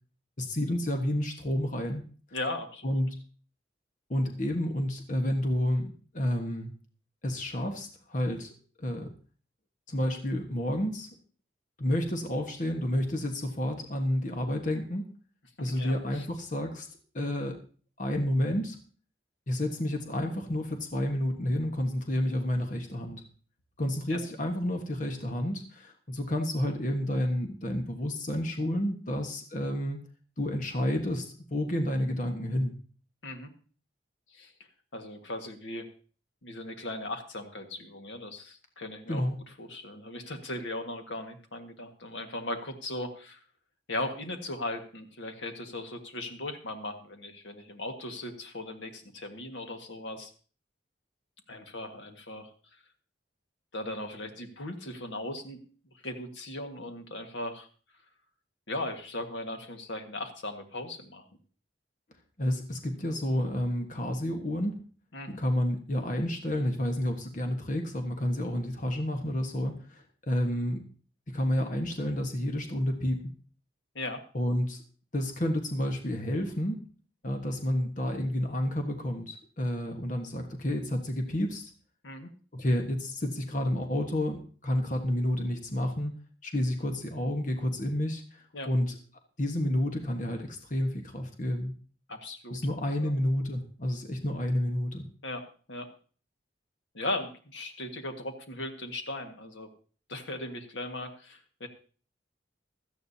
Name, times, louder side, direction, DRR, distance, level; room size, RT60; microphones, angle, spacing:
voice 1, 0.4-2.0 2.8-3.2 4.1-6.7 7.2-8.5 8.8-9.1 9.9-11.1 11.8-15.1 15.6-16.9 17.1-17.6 18.0-18.8 19.5-23.2 23.8-30.0 30.4-32.7 39.1-39.4 62.4-64.8 65.4-70.8 71.3-73.3 74.3-74.8 75.1-76.8 77.2-81.7 82.5-86.1 86.4-89.0 89.4-91.7 92.5-95.1, left 1 dB, 45° left, 4 dB, 1.4 m, -30 dB
voice 2, 2.3-3.0 15.6-16.3 24.1-24.2 33.2-33.5 34.3-34.5 34.9-35.9 36.4-39.2 39.6-43.4 43.9-50.3 51.5-52.5 53.7-55.6 56.0-57.7 58.7-61.2 65.1-65.4 74.0-74.2 82.0-82.3 88.5-88.7 92.1-93.1 95.2-95.9 96.9-99.7 100.1-101.7, left 2 dB, 85° left, 5 dB, 1.7 m, -38 dB
16.5 x 13.0 x 2.8 m, 0.40 s
head